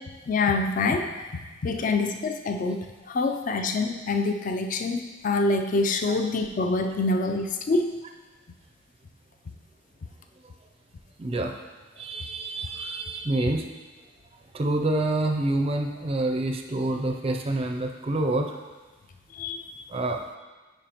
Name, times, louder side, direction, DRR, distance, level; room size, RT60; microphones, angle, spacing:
voice 1, 0.3-1.3 1.6-8.0 19.3-19.6, left 3 dB, 45° left, 6 dB, 0.4 m, -26 dB
voice 2, 11.2-11.5 12.0-13.7 14.5-18.6 19.9-20.2, right 2 dB, 30° right, 3 dB, 0.4 m, -27 dB
8.9 x 5.2 x 2.9 m, 1.3 s
head